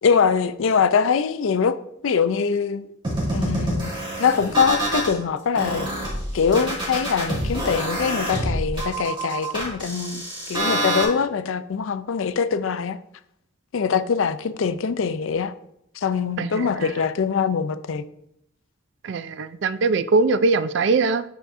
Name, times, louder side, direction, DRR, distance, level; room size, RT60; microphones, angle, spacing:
voice 1, 0.0-1.8 2.0-2.8 3.3-3.9 4.2-5.9 6.3-10.2 10.5-13.0 13.7-15.5 16.0-18.0, left 6 dB, 75° left, 0.4 m, -23 dB
sound 1, 3.0-5.1 5.5-11.0, right 1 dB, 25° right, 2.2 m, -26 dB
voice 2, 16.4-16.9 19.0-21.2, right 3 dB, 55° right, 0.4 m, -22 dB
9.2 x 6.1 x 2.6 m
head